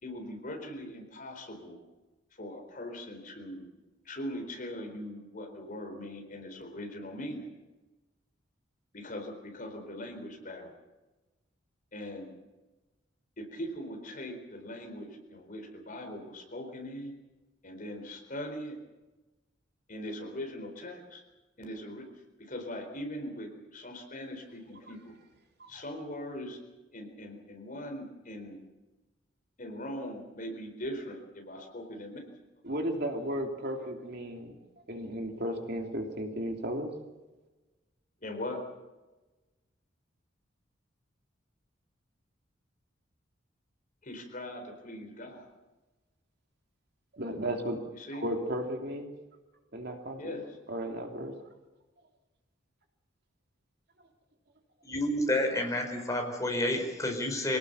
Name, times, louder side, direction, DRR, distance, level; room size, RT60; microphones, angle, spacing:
voice 1, 0.0-1.8 2.3-3.7 4.0-7.5 8.9-10.7 11.9-12.3 13.4-17.2 17.6-18.8 19.9-21.2 21.6-22.1 22.4-25.1 25.7-26.6 26.9-28.6 29.6-32.2 38.2-38.6 44.0-45.5 47.9-48.2 50.2-50.6, left 1 dB, 45° left, 4 dB, 4.2 m, -41 dB
voice 2, 32.6-34.6 34.9-36.9 47.1-47.8 48.1-49.1 49.7-50.4 50.7-51.3, equal, 55° right, 3 dB, 2.9 m, -34 dB
voice 3, 54.8-57.6, left 1 dB, 15° left, 2 dB, 4.7 m, -29 dB
25.0 x 18.5 x 6.8 m, 1.1 s
head